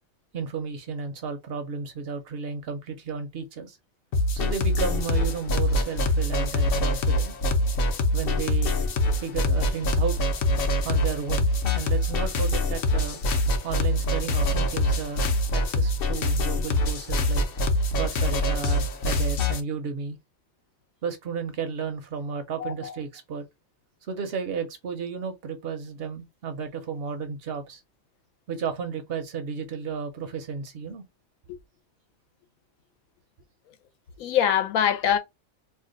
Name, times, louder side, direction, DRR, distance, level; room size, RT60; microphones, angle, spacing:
voice 1, 0.3-3.8 4.3-7.3 8.1-8.8 9.2-10.2 10.8-11.5 11.7-13.2 13.6-17.4 17.9-20.2 21.0-23.5 24.1-27.8 28.5-31.0, right 6 dB, 60° right, 0.6 m, -33 dB
sound 1, 4.1-19.6, left 1 dB, 55° left, 0.7 m, -24 dB
voice 2, 22.6-23.0 34.2-35.2, left 9 dB, 85° left, 1.1 m, -23 dB
2.7 x 2.2 x 3.7 m
omnidirectional pair, 1.4 m